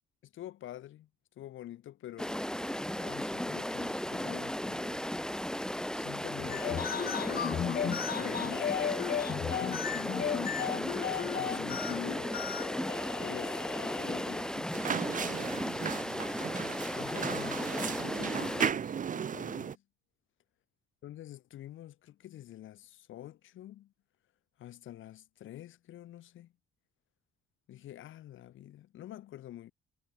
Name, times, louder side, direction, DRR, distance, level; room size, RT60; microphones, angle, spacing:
voice 1, 0.2-1.1 1.4-2.4 3.0-5.1 5.9-7.7 8.1-8.8 9.5-12.4 13.2-16.1 16.9-19.8 21.0-23.9 24.6-26.5 27.7-29.7, left 13 dB, 80° left, 5.5 m, -48 dB
sound 1, 2.2-18.7, equal, 5° left, 2.8 m, -35 dB
sound 2, 6.4-14.7, left 9 dB, 50° left, 0.8 m, -35 dB
sound 3, 14.7-19.8, right 7 dB, 40° right, 0.9 m, -35 dB
cardioid pair, 90°, 20 cm